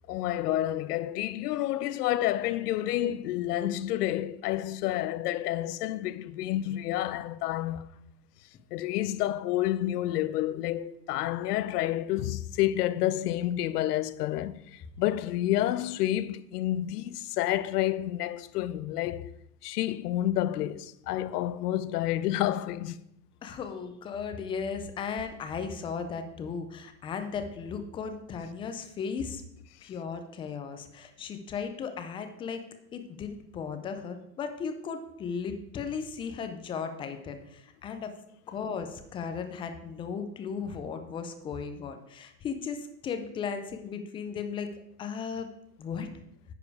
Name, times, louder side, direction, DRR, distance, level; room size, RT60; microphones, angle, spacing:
voice 1, 0.1-7.9 8.7-19.3 19.6-23.0, left 13 dB, 70° left, 0.7 m, -29 dB
voice 2, 23.4-29.4 29.8-32.6 32.9-38.1 38.5-44.7 45.0-45.5 45.8-46.1, left 6 dB, 10° left, 0.3 m, -36 dB
9.9 x 4.9 x 4.7 m
hypercardioid pair, 115°, 49 cm